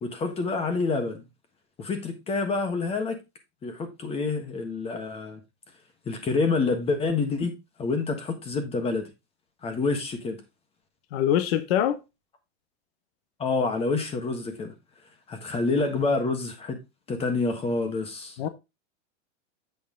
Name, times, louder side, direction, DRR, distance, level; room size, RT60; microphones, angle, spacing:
voice 1, 0.0-1.2 1.8-3.2 3.6-5.4 6.0-7.5 7.8-9.1 9.6-10.4 13.4-14.7 15.3-16.8 17.1-18.4, left 3 dB, 15° left, 1.4 m, -27 dB
voice 2, 11.1-12.0 18.4-18.5, left 10 dB, 60° left, 1.1 m, -24 dB
8.1 x 5.5 x 3.8 m
supercardioid pair, 160°, 34 cm